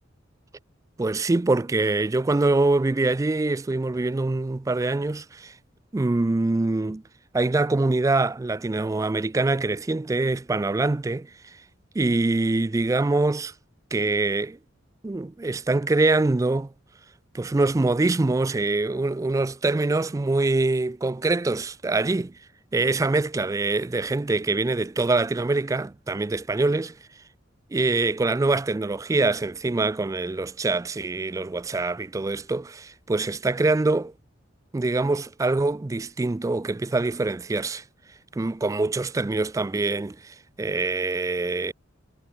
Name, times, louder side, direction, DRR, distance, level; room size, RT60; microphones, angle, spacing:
voice 1, 1.0-5.5 5.9-7.0 7.3-11.3 12.0-13.5 13.9-14.6 15.0-16.7 17.3-22.3 22.7-27.0 27.7-34.1 34.7-37.8 38.3-41.7, right 2 dB, 15° right, 0.3 m, -24 dB
head